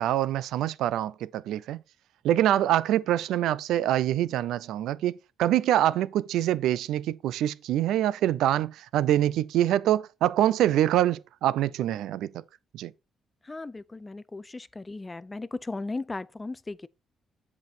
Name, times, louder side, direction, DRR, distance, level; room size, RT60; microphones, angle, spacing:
voice 1, 0.0-1.8 2.2-5.1 5.4-12.3 12.7-12.9, right 12 dB, 85° right, 0.4 m, -25 dB
voice 2, 13.4-16.9, left 3 dB, 20° left, 0.5 m, -36 dB
8.1 x 5.3 x 4.4 m
cardioid pair, 90°, 0 cm